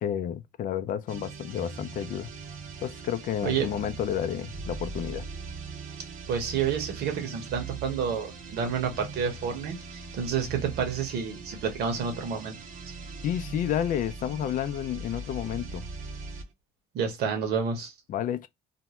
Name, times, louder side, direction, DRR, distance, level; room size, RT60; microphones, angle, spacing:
voice 1, 0.0-2.3 2.8-5.2 13.2-15.9 18.1-18.5, left 10 dB, 50° left, 0.4 m, -31 dB
sound 1, 1.1-16.5, right 4 dB, 50° right, 0.7 m, -40 dB
voice 2, 6.3-12.6 16.9-17.9, right 7 dB, 75° right, 1.1 m, -29 dB
2.6 x 2.2 x 3.0 m
cardioid pair, 110°, 17 cm